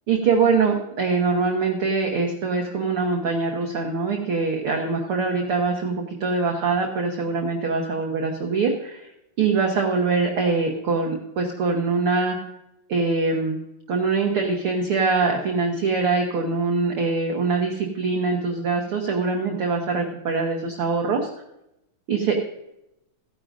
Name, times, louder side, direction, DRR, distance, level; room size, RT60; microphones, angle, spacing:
voice 1, 0.1-9.1 9.4-12.4 12.9-13.6 13.9-21.2 22.1-22.4, right 4 dB, 65° right, 1 dB, 1.4 m, -23 dB
16.5 x 10.5 x 2.5 m, 0.84 s
omnidirectional pair, 4.0 m